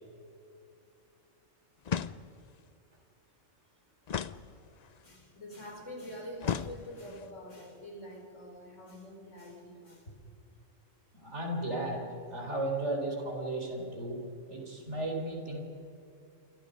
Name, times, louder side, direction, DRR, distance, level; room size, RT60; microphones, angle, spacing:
sound 1, 1.8-2.6 4.1-5.0 6.4-7.3, left 7 dB, 50° left, 0.5 m, -36 dB
voice 1, 5.0-10.1, equal, 70° left, 2 dB, 4.8 m, -46 dB
voice 2, 11.1-14.2 14.5-15.6, right 1 dB, 60° right, 1 dB, 4.8 m, -35 dB
29.5 x 24.5 x 5.3 m, 2.7 s
omnidirectional pair, 1.3 m